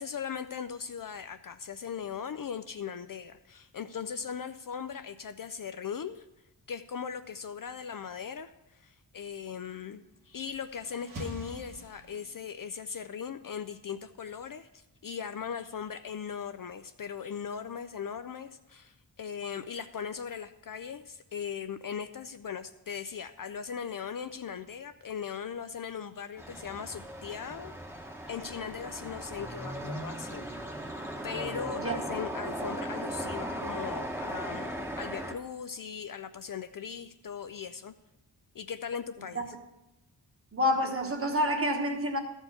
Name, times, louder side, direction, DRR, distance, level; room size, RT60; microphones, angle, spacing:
voice 1, 0.0-6.2 6.7-28.0 28.3-30.4 31.2-37.9 38.5-39.4, left 7 dB, 50° left, 10 dB, 0.4 m, -39 dB
sound 1, 10.2-12.6, right 1 dB, 50° right, 1.4 m, -45 dB
sound 2, 26.4-35.3, right 1 dB, 5° right, 1.0 m, -38 dB
voice 2, 40.5-42.2, left 1 dB, 30° right, 3 dB, 1.2 m, -28 dB
13.0 x 4.5 x 8.0 m, 0.96 s
wide cardioid pair, 165°, 43 cm